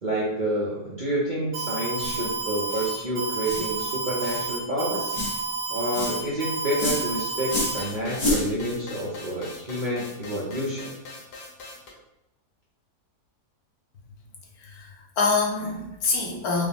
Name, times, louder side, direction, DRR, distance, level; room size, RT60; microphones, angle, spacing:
voice 1, 0.0-5.2 5.7-10.9, right 1 dB, 45° right, -7 dB, 0.6 m, -28 dB
Alarm, 1.5-7.8, right 4 dB, 75° right, 1.7 m, -30 dB
sound 1, 2.0-2.2 2.7-2.9 3.4-3.7 4.2-4.4 5.1-5.4 5.9-6.2 6.8-7.0 7.5-7.8 8.2-8.5, left 2 dB, 45° left, 0.3 m, -28 dB
sound 2, 7.5-11.9, left 2 dB, 85° left, 1.5 m, -42 dB
voice 2, 14.6-16.7, left 4 dB, 70° left, -1 dB, 1.2 m, -26 dB
5.0 x 2.1 x 3.4 m, 0.89 s
omnidirectional pair, 1.7 m